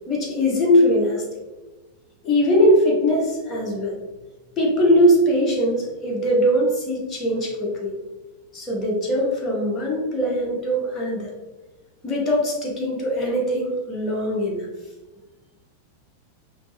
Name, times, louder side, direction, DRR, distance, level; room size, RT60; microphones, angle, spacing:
voice 1, 0.1-1.2 2.2-3.9 4.6-7.9 8.5-11.3 12.0-14.7, equal, 20° left, -3 dB, 1.2 m, -21 dB
5.0 x 2.8 x 3.0 m, 1.2 s
figure-of-eight pair, 90°, 0 cm